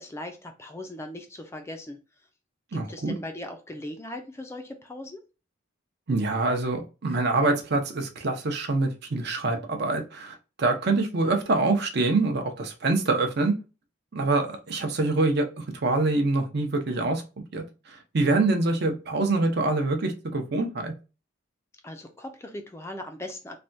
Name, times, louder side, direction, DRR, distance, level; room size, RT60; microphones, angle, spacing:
voice 1, 0.0-2.0 2.7-5.2 21.8-23.6, left 1 dB, 15° left, 5 dB, 0.3 m, -39 dB
voice 2, 2.7-3.1 6.1-13.5 14.1-17.2 17.5-20.9, right 3 dB, 50° right, 5 dB, 0.6 m, -25 dB
3.3 x 2.2 x 2.6 m, 0.31 s
head